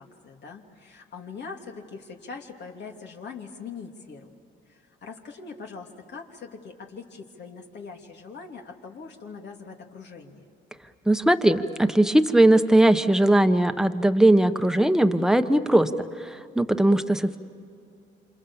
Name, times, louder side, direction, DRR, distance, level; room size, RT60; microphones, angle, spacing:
voice 1, 0.0-4.3 4.7-10.5, left 5 dB, 60° left, 2 dB, 2.9 m, -42 dB
voice 2, 11.1-15.9 16.2-17.4, right 1 dB, 5° right, 8 dB, 1.3 m, -19 dB
28.5 x 27.0 x 7.2 m, 2.5 s
cardioid pair, 90°, 20 cm